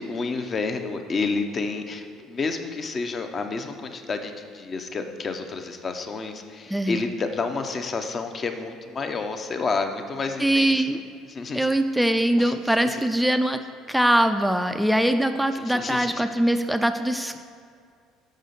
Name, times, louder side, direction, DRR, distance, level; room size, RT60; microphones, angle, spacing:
voice 1, 0.0-10.8 11.3-11.7 12.4-12.5 12.9-13.0 15.6-16.2, left 4 dB, 35° left, 6 dB, 0.6 m, -30 dB
voice 2, 6.7-7.0 10.4-11.0 11.5-13.6 13.9-17.4, right 1 dB, 5° right, 8 dB, 0.3 m, -22 dB
6.3 x 6.2 x 3.9 m, 2.2 s
figure-of-eight pair, 55°, 0 cm